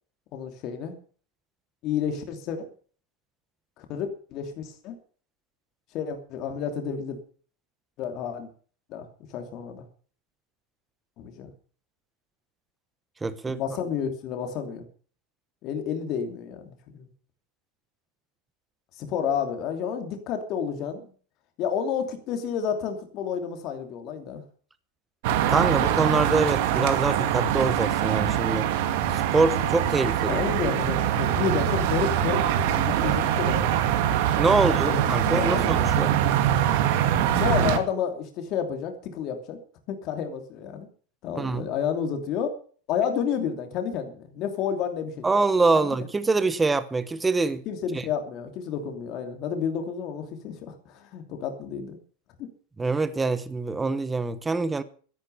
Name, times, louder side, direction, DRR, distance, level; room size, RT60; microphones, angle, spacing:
voice 1, 0.3-0.9 1.8-2.7 3.8-4.9 5.9-7.2 8.0-8.5 8.9-9.8 11.2-11.5 13.5-14.8 15.6-17.1 19.0-21.1 21.6-24.4 30.3-33.7 34.5-35.0 35.3-35.8 37.4-39.6 39.9-40.9 41.2-42.5 42.9-45.2 45.7-46.0 47.7-52.0 52.4-52.5, left 7 dB, 35° left, 2.9 m, -30 dB
voice 2, 13.2-13.6 25.5-28.7 29.1-30.5 34.4-36.1 41.3-41.7 45.2-47.6 47.9-48.0 52.8-54.8, right 3 dB, 10° right, 1.0 m, -25 dB
sound 1, 25.2-37.8, right 10 dB, 55° right, 2.1 m, -23 dB
13.0 x 11.0 x 7.0 m
supercardioid pair, 165°, 0 cm